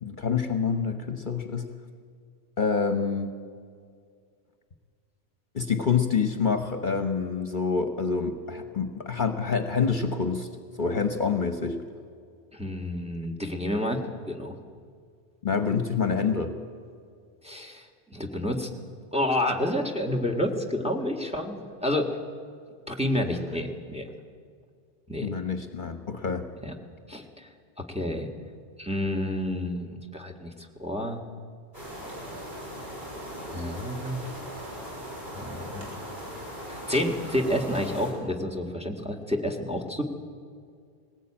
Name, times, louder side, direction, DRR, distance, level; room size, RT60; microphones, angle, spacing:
voice 1, 0.0-1.7 2.6-3.3 5.5-10.5 10.8-11.8 15.4-16.5 25.2-26.5, left 5 dB, 50° left, 7 dB, 1.1 m, -27 dB
voice 2, 12.5-14.0 14.2-14.5 17.4-18.7 19.1-22.2 22.9-24.1 25.1-25.3 26.6-26.7 27.1-27.5 27.9-28.3 28.8-30.5 30.8-31.2 33.5-34.2 35.4-35.9 36.7-40.0, left 1 dB, 5° right, 4 dB, 1.7 m, -29 dB
sound 1, 31.7-38.1, equal, 45° right, 6.5 m, -39 dB
19.5 x 17.5 x 8.7 m, 2.2 s
omnidirectional pair, 1.1 m